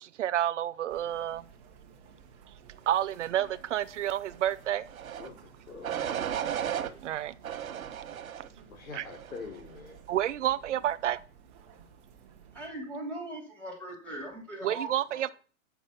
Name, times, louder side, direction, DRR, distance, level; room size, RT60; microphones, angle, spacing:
voice 1, 0.0-1.4 2.9-4.8 7.0-7.3 8.9-9.0 10.1-11.2 14.6-15.3, right 12 dB, 60° right, 0.6 m, -29 dB
sound 1, 0.9-12.7, right 7 dB, 15° right, 0.9 m, -55 dB
sound 2, 4.9-5.3 5.8-6.9 7.4-8.5 9.0-9.5, right 9 dB, 85° right, 1.3 m, -34 dB
voice 2, 5.2-6.0 8.7-10.0, left 4 dB, 80° left, 3.5 m, -44 dB
voice 3, 12.5-15.3, right 1 dB, 5° left, 2.6 m, -40 dB
8.1 x 6.0 x 5.6 m
hypercardioid pair, 165°, 41 cm